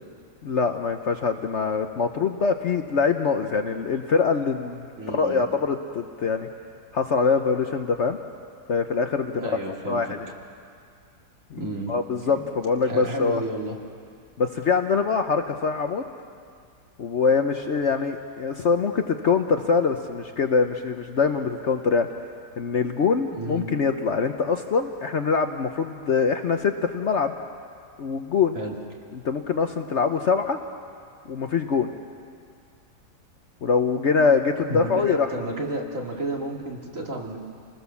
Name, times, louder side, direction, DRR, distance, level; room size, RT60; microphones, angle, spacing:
voice 1, 0.4-6.5 6.9-8.2 8.7-9.5 9.9-10.3 11.5-13.4 14.4-16.0 17.0-22.1 22.6-27.3 28.0-28.6 29.1-30.6 31.3-31.9 33.6-35.3, left 5 dB, 55° left, 6 dB, 1.0 m, -24 dB
voice 2, 5.0-5.5 9.4-10.1 11.6-11.9 12.3-12.4 12.8-13.8 23.3-23.7 28.5-28.7 34.2-34.3 34.7-37.4, right 1 dB, 50° right, -1 dB, 2.7 m, -31 dB
28.5 x 19.5 x 7.1 m, 2.3 s
omnidirectional pair, 1.7 m